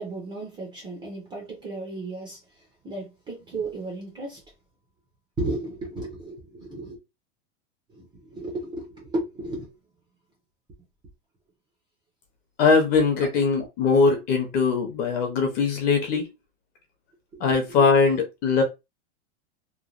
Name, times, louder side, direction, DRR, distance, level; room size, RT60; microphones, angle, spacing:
voice 1, 0.0-4.4 5.4-7.0 7.9-9.7 17.3-17.4, right 2 dB, 15° right, 0.5 m, -34 dB
voice 2, 12.6-16.3 17.4-18.6, left 4 dB, 25° left, 0.7 m, -21 dB
3.1 x 2.1 x 2.4 m
supercardioid pair, 160°, 36 cm